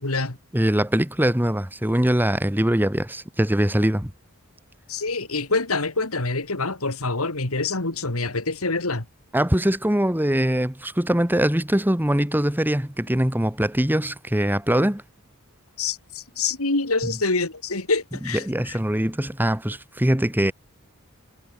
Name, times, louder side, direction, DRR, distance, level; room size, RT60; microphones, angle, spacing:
voice 1, 0.0-0.4 4.9-9.0 15.8-18.8, left 3 dB, 70° left, 3.1 m, -26 dB
voice 2, 0.5-4.1 9.3-15.0 17.0-17.1 18.4-20.5, right 1 dB, 10° right, 1.5 m, -22 dB
head